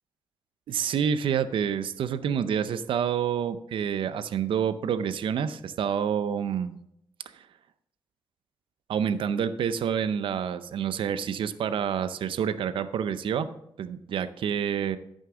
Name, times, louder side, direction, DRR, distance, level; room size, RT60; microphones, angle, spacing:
voice 1, 0.7-6.8 7.3-7.4 8.9-13.5 13.8-15.0, right 8 dB, 75° right, 13 dB, 0.6 m, -28 dB
10.5 x 6.5 x 3.8 m, 0.77 s
cardioid pair, 85°, 9 cm